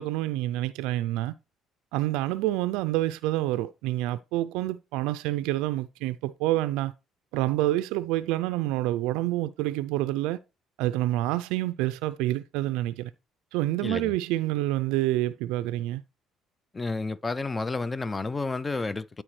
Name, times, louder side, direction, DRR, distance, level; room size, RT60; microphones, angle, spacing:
voice 1, 0.0-1.3 1.9-6.9 7.3-10.4 10.8-13.1 13.5-16.0, right 16 dB, 85° right, 0.3 m, -27 dB
voice 2, 13.8-14.2 16.7-19.2, left 3 dB, 25° left, 0.4 m, -31 dB
13.0 x 4.5 x 3.1 m
supercardioid pair, 80°, 0 cm